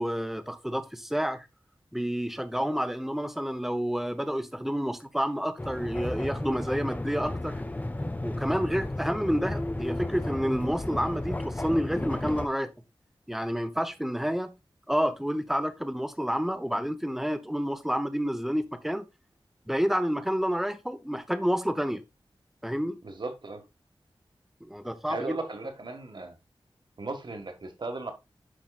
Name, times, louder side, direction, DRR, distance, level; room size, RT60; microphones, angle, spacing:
voice 1, 0.0-1.5 1.9-7.6 8.2-12.7 13.3-14.5 14.9-19.0 19.7-22.0 22.6-23.0 24.6-25.3, equal, 5° right, 0.9 m, -29 dB
sound 1, 5.6-12.5, left 1 dB, 20° left, 0.6 m, -33 dB
voice 2, 23.0-23.7 25.1-26.4 27.0-28.1, right 2 dB, 55° right, 1.6 m, -36 dB
11.5 x 4.8 x 2.4 m
wide cardioid pair, 90°, 9 cm